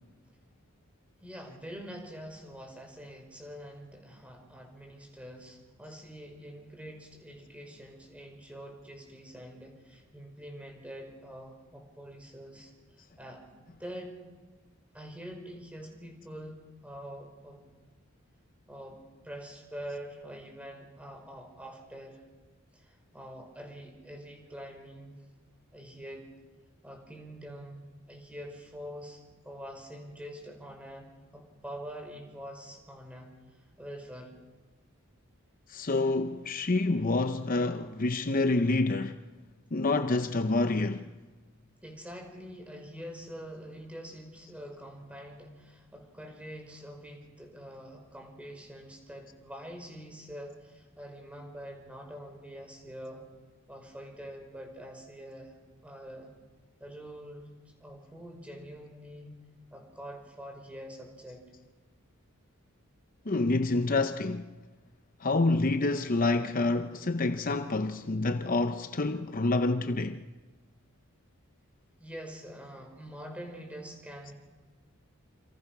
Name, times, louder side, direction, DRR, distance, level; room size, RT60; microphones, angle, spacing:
voice 1, 1.2-12.7 13.2-13.4 13.8-14.2 14.9-17.6 18.7-22.2 22.7-25.2 25.7-26.3 26.8-31.1 31.3-34.3 41.8-53.2 53.7-55.5 55.8-56.3 56.8-59.4 59.7-61.4 72.0-74.3, equal, 5° right, 5.4 m, -45 dB
voice 2, 35.7-39.2 39.7-41.1 63.3-64.5 65.2-70.2, left 2 dB, 40° left, 0.7 m, -27 dB
29.0 x 27.5 x 6.1 m
head